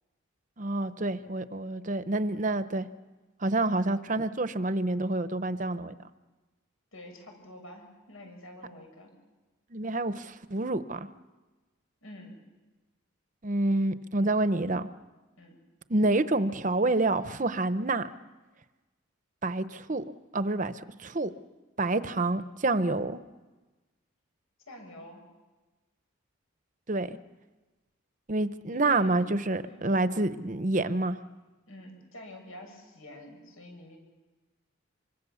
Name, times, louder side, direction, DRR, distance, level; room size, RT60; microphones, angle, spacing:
voice 1, 0.6-2.9 3.4-5.9 9.7-11.1 13.4-14.9 15.9-18.1 19.4-21.3 21.8-23.2 26.9-27.2 28.3-31.2, right 2 dB, 35° right, 12 dB, 0.8 m, -28 dB
voice 2, 6.9-9.1 12.0-12.3 15.4-15.5 24.7-25.2 28.7-29.1 29.6-29.8 31.7-34.0, left 1 dB, 90° left, 3 dB, 7.2 m, -47 dB
26.5 x 25.0 x 7.1 m, 1.2 s
head